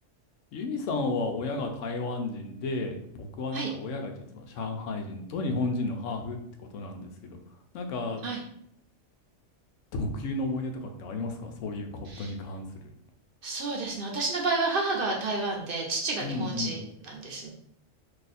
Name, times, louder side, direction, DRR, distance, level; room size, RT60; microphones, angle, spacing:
voice 1, 0.5-7.4 7.7-8.2 9.9-12.7 16.2-16.8, left 2 dB, 85° left, 5 dB, 1.0 m, -33 dB
voice 2, 13.4-17.5, right 3 dB, 55° right, 0 dB, 0.8 m, -30 dB
2.7 x 2.4 x 4.0 m, 0.70 s
omnidirectional pair, 1.2 m